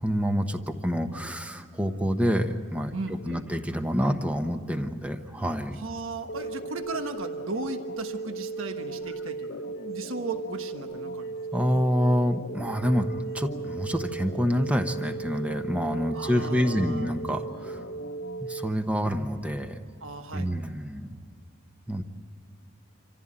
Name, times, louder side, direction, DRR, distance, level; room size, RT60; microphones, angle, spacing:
voice 1, 0.0-2.9 3.3-5.8 11.5-13.1 13.3-17.8 18.4-19.8 20.3-21.2 21.9-22.0, equal, 5° right, 7 dB, 1.0 m, -27 dB
voice 2, 2.9-3.5 5.8-11.3 16.1-17.1 20.0-20.5, right 3 dB, 70° right, 7 dB, 1.2 m, -36 dB
sound 1, 6.3-18.7, right 3 dB, 50° left, 0.9 m, -36 dB
26.5 x 15.0 x 8.8 m, 2.4 s
head